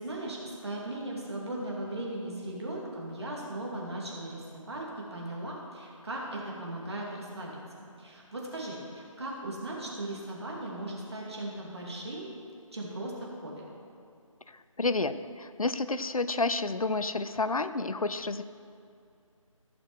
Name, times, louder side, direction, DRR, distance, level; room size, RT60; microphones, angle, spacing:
voice 1, 0.0-4.8 5.1-12.3 12.7-13.6, right 1 dB, 50° right, -3 dB, 2.6 m, -38 dB
voice 2, 14.5-18.4, left 3 dB, 80° left, 13 dB, 0.6 m, -30 dB
15.0 x 6.1 x 4.6 m, 2.4 s
figure-of-eight pair, 160°, 18 cm